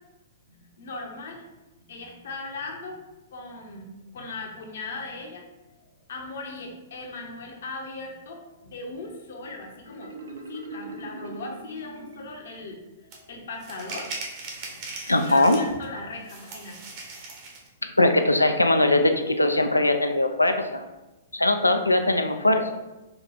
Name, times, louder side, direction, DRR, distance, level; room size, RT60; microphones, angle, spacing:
voice 1, 0.5-1.5 1.9-3.0 3.3-10.1 10.5-14.1 14.6-14.7 15.1-16.8, left 3 dB, 60° left, 1 dB, 0.9 m, -38 dB
Marimba xylophone, 9.8-12.6, right 3 dB, 70° right, 0.6 m, -41 dB
sound 1, 13.1-13.2 13.6-15.8 16.3-17.7, right 3 dB, 40° right, 1.0 m, -39 dB
voice 2, 15.1-15.6 18.0-20.8 21.3-22.6, left 2 dB, 85° left, 7 dB, 0.4 m, -20 dB
4.5 x 2.3 x 3.9 m, 1.1 s
figure-of-eight pair, 110°, 0 cm